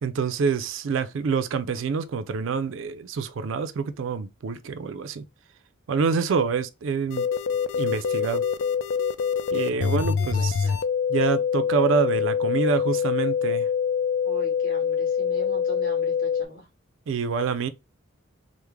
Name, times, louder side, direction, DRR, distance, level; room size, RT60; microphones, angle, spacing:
voice 1, 0.0-5.2 5.9-7.3 7.8-8.4 9.5-10.6 11.1-13.7 17.1-17.7, right 5 dB, 70° right, 0.4 m, -26 dB
sound 1, 7.1-16.5, left 7 dB, 70° left, 0.3 m, -25 dB
voice 2, 10.2-10.8 14.2-16.7, equal, 45° left, 1.5 m, -40 dB
3.4 x 2.0 x 3.1 m
head